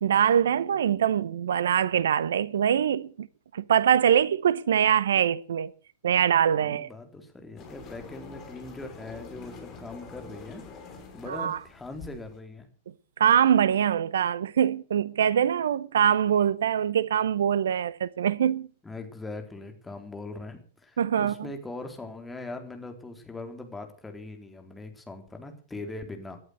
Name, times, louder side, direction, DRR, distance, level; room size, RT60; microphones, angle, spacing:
voice 1, 0.0-3.3 3.5-5.7 6.0-6.9 11.3-11.6 13.2-18.7 21.0-21.5, right 9 dB, 70° right, 0.8 m, -23 dB
voice 2, 6.6-12.7 18.8-26.4, left 2 dB, 10° left, 3.9 m, -41 dB
sound 1, 7.6-12.4, left 5 dB, 35° left, 6.2 m, -45 dB
19.0 x 11.0 x 6.6 m
figure-of-eight pair, 100°, 0 cm